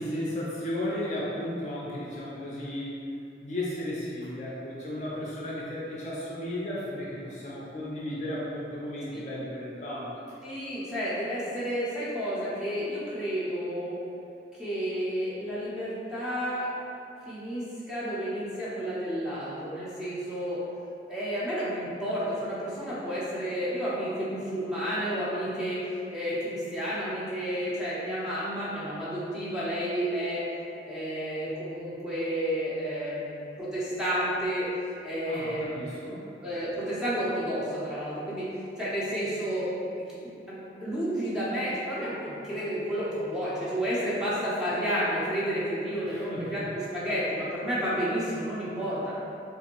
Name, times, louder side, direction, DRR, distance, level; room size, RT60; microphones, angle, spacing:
voice 1, 0.0-3.0 3.4-10.4 35.3-36.3 46.1-46.5, left 1 dB, 40° left, -6 dB, 0.5 m, -34 dB
voice 2, 10.4-14.0 14.6-16.7 17.3-20.6 21.1-25.8 26.1-30.4 30.9-34.7 35.0-35.8 36.4-38.5 38.8-39.9 40.2-49.1, equal, 5° right, -10 dB, 0.6 m, -31 dB
3.7 x 2.5 x 2.9 m, 2.7 s
head